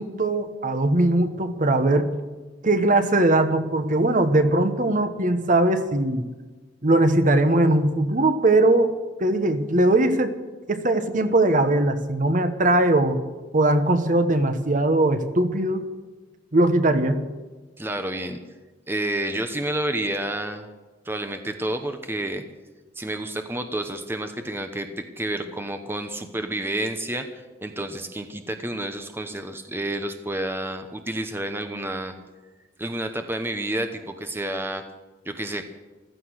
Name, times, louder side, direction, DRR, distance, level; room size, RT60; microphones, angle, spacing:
voice 1, 0.0-2.1 2.6-6.2 6.8-8.9 9.2-10.3 10.7-13.2 13.5-15.8 16.5-17.2, right 2 dB, 45° right, 9 dB, 1.2 m, -20 dB
voice 2, 17.8-18.4 18.9-20.7 21.0-22.4 23.0-32.1 32.8-34.8 35.2-35.6, right 1 dB, 10° right, 6 dB, 1.0 m, -30 dB
15.5 x 14.0 x 6.5 m, 1.2 s
head